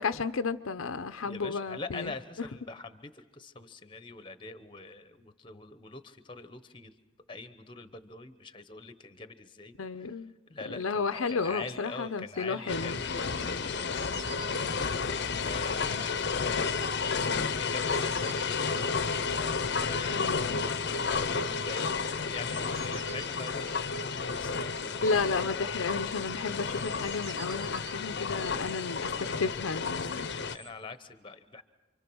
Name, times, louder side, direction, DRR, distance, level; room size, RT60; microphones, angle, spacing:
voice 1, 0.0-2.1 9.8-10.3 10.7-13.0 15.9-16.0 20.1-20.6 25.0-30.3, left 4 dB, 85° left, 11 dB, 0.7 m, -32 dB
voice 2, 1.2-6.9 7.3-10.2 10.5-14.0 14.3-20.5 20.8-25.3 29.9-31.6, left 3 dB, 25° left, 11 dB, 0.9 m, -44 dB
sound 1, 11.1-30.7, right 5 dB, 90° right, 2.6 m, -53 dB
sound 2, 12.7-30.6, left 5 dB, 55° left, 0.7 m, -32 dB
28.0 x 24.5 x 6.2 m, 1.2 s
head